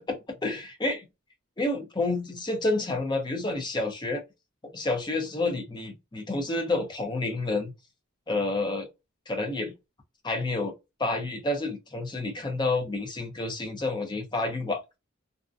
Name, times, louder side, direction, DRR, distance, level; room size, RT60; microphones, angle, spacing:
voice 1, 0.1-1.1 1.6-4.2 4.7-7.7 8.3-8.9 9.3-9.7 10.2-10.7 11.0-14.8, left 2 dB, 20° left, 0.6 m, -29 dB
2.6 x 2.2 x 2.4 m
head